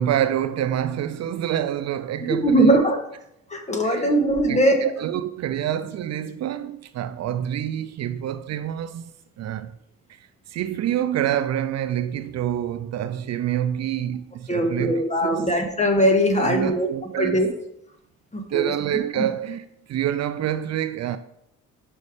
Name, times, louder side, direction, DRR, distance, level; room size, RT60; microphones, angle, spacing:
voice 1, 0.0-2.9 3.8-4.2 4.5-9.7 10.1-15.5 16.3-17.5 18.5-21.2, right 10 dB, 60° right, 0.5 m, -27 dB
voice 2, 2.3-3.0 3.5-4.8 14.5-16.9 17.2-17.5 18.3-18.7, right 1 dB, 25° left, 1.5 m, -20 dB
5.4 x 5.4 x 4.9 m
cardioid pair, 90°, 30 cm